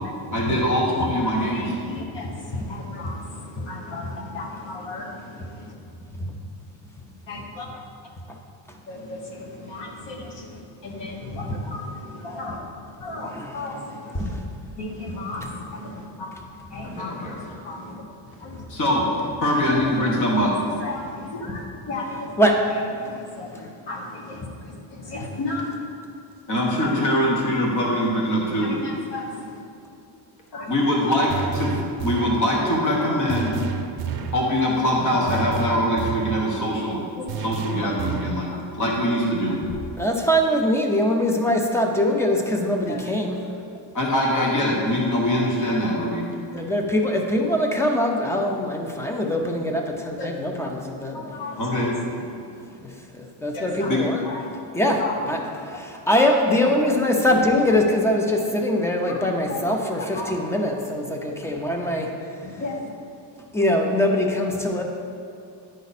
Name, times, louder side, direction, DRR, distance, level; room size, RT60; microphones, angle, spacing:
voice 1, 0.3-1.8 15.1-15.5 16.8-17.4 18.7-19.1 19.4-20.5 26.5-28.7 30.7-33.6 34.3-37.0 37.4-38.5 38.8-39.6 43.9-46.2 51.6-51.9 53.9-54.0, equal, 40° left, -2 dB, 1.3 m, -23 dB
voice 2, 1.5-5.7 7.3-7.7 8.9-12.6 13.0-14.3 14.8-16.3 16.7-18.0 18.4-18.6 19.7-20.5 20.8-22.4 23.0-25.7 28.6-29.6 30.5-30.7 33.0-33.2 37.2-37.3 37.7-37.9 42.8-43.1 45.7-45.8 50.2-50.3 51.1-51.6 52.2-52.4 53.5-53.9 54.2-54.4 55.0-55.2 59.1-59.2 59.5-59.6 60.1-60.4 62.4-62.9, left 2 dB, 65° left, 1 dB, 1.3 m, -35 dB
voice 3, 11.2-11.6 13.2-13.7 14.1-14.4 15.4-15.5 21.5-21.6 21.9-22.0 22.4-22.7 25.2-25.3 39.6-43.4 46.5-51.2 52.8-54.2 54.7-62.1 63.5-64.8, left 1 dB, 5° left, 2 dB, 0.4 m, -23 dB
sound 1, 31.3-32.5 33.3-34.5 35.3-36.5 37.3-38.5, right 6 dB, 55° right, 0.7 m, -30 dB
10.5 x 5.1 x 4.1 m, 2.5 s
cardioid pair, 175°, 45 cm